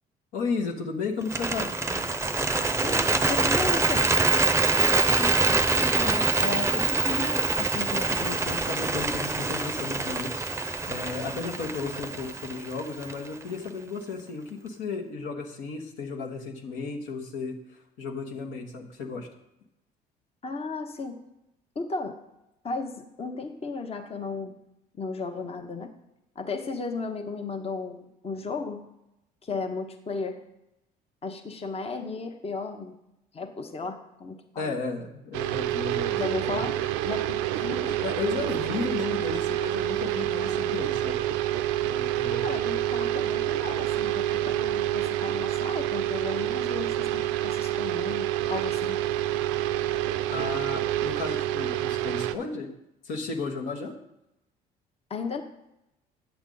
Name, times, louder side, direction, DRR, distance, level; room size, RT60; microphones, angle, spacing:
voice 1, 0.3-1.7 5.1-19.3 34.6-36.6 38.0-41.3 41.8-42.5 50.3-52.7 53.0-53.9, left 4 dB, 70° left, 1 dB, 1.2 m, -34 dB
Bird, 1.2-13.4, right 3 dB, 15° right, 0.6 m, -25 dB
voice 2, 2.8-4.1 20.4-21.2 21.7-22.2 22.6-24.6 25.0-25.9 26.3-28.8 29.4-30.4 31.2-33.0 33.3-34.7 36.1-36.8 37.0-38.0 42.3-49.0 55.1-55.4, left 4 dB, 30° left, 5 dB, 0.9 m, -34 dB
sound 1, 35.3-52.3, right 13 dB, 75° right, 0.4 m, -28 dB
8.8 x 7.1 x 3.9 m, 0.87 s
hypercardioid pair, 65°, 20 cm